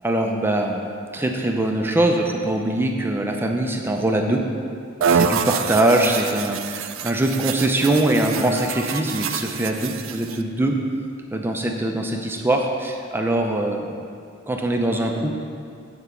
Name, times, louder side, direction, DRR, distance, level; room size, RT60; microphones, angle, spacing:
voice 1, 0.0-4.4 5.0-10.8 11.3-14.0 14.5-15.3, right 1 dB, 10° right, 2 dB, 0.5 m, -22 dB
sound 1, 5.0-10.4, right 6 dB, 80° right, 0.4 m, -26 dB
7.9 x 4.8 x 6.7 m, 2.4 s
head